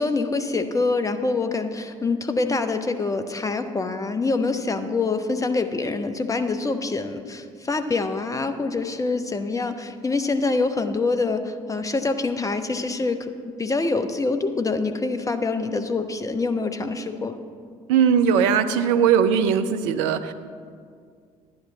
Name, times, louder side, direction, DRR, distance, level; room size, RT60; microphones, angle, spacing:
voice 1, 0.0-17.4, left 3 dB, 20° left, 8 dB, 0.9 m, -25 dB
voice 2, 17.9-20.3, right 7 dB, 65° right, 9 dB, 0.6 m, -19 dB
11.0 x 10.5 x 4.0 m, 2.1 s
figure-of-eight pair, 50°, 17 cm